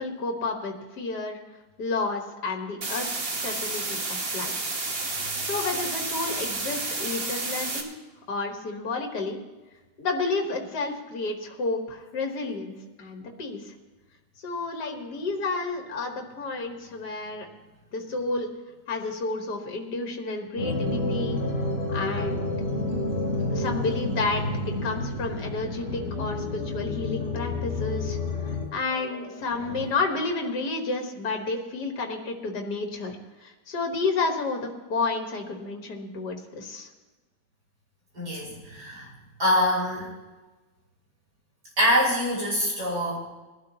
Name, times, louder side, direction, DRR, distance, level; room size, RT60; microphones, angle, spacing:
voice 1, 0.0-1.4 1.8-3.1 3.4-4.7 5.4-7.9 8.3-9.4 10.0-13.7 14.4-17.5 17.9-18.5 18.9-21.4 21.9-22.5 23.5-28.2 28.5-36.9, left 3 dB, 70° left, 3 dB, 2.1 m, -31 dB
sound 1, 2.8-7.8, right 3 dB, 35° right, 1.4 m, -31 dB
sound 2, 20.6-28.7, left 2 dB, 50° left, 3.1 m, -29 dB
voice 2, 38.1-39.1 39.4-40.1 41.8-43.2, equal, 65° right, -6 dB, 6.0 m, -24 dB
21.0 x 12.0 x 2.9 m, 1.2 s
omnidirectional pair, 1.8 m